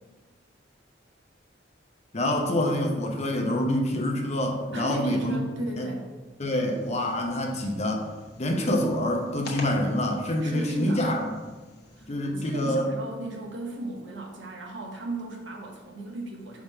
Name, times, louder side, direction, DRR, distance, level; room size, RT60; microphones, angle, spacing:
voice 1, 2.1-5.4 5.8-5.9 6.4-8.1 8.4-11.3 12.1-12.9, left 1 dB, 35° left, 2 dB, 0.8 m, -26 dB
voice 2, 4.7-6.1 10.4-11.0 12.0-16.6, right 2 dB, 75° right, 0 dB, 1.1 m, -36 dB
sound 1, 6.6-12.1, left 2 dB, 60° left, 1.1 m, -46 dB
4.7 x 3.8 x 5.5 m, 1.3 s
head